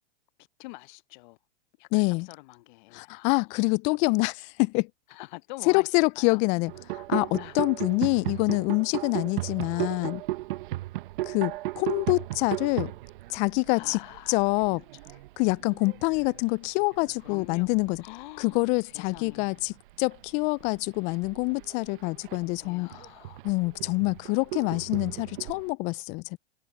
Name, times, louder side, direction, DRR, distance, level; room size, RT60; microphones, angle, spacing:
voice 1, 0.6-1.4 1.8-3.7 5.1-5.9 6.2-6.4 7.4-7.6 13.7-14.8 17.2-17.7 18.0-19.7 22.6-23.4, left 22 dB, 45° left, 1.1 m, -45 dB
voice 2, 1.9-2.3 2.9-4.9 5.7-10.2 11.2-12.9 13.3-14.0 14.3-14.8 15.4-18.0 18.4-22.9 23.4-26.4, left 28 dB, 25° left, 0.3 m, -26 dB
sound 1, 6.7-18.1 18.4-18.8 19.1-25.7, right 17 dB, 50° right, 1.0 m, -36 dB
hypercardioid pair, 110°, 33 cm